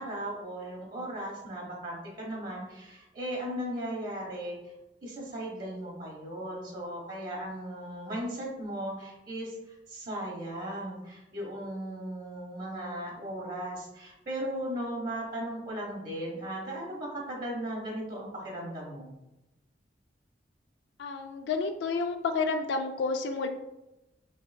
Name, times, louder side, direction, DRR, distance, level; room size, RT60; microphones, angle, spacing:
voice 1, 0.0-4.6 5.0-19.1, right 1 dB, 55° right, -2 dB, 1.0 m, -37 dB
voice 2, 21.0-23.5, left 4 dB, 70° left, 5 dB, 0.3 m, -30 dB
6.0 x 2.8 x 2.6 m, 0.96 s
head